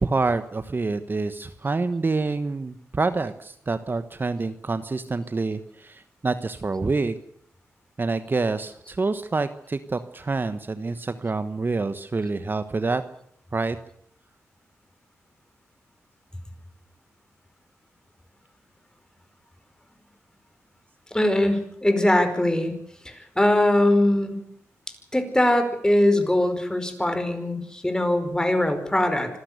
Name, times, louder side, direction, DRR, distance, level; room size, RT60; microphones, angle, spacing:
voice 1, 0.0-7.1 8.0-13.0 13.5-13.8, right 3 dB, 35° right, 11 dB, 1.2 m, -27 dB
voice 2, 21.1-22.7 23.0-24.4 25.1-29.4, left 1 dB, 10° left, 8 dB, 5.0 m, -21 dB
25.5 x 13.0 x 8.3 m, 0.70 s
cardioid pair, 60°, 6 cm